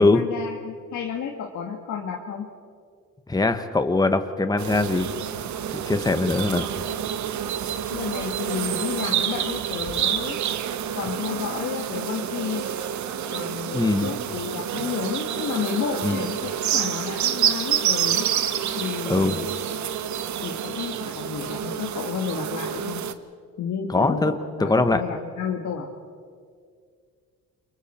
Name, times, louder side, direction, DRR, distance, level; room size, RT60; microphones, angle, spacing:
voice 1, 0.0-2.5 7.9-10.4 10.9-12.7 13.3-18.3 18.8-19.4 20.4-23.0 23.6-25.9, left 7 dB, 70° left, 1 dB, 1.9 m, -31 dB
voice 2, 3.3-5.1 5.7-6.7 13.7-14.1 16.0-16.2 19.1-19.3 23.9-24.3 24.7-25.0, left 2 dB, 15° left, 8 dB, 1.2 m, -21 dB
sound 1, 4.6-23.1, right 9 dB, 70° right, 1.1 m, -28 dB
29.0 x 23.5 x 4.4 m, 2.1 s
cardioid pair, 90°, 30 cm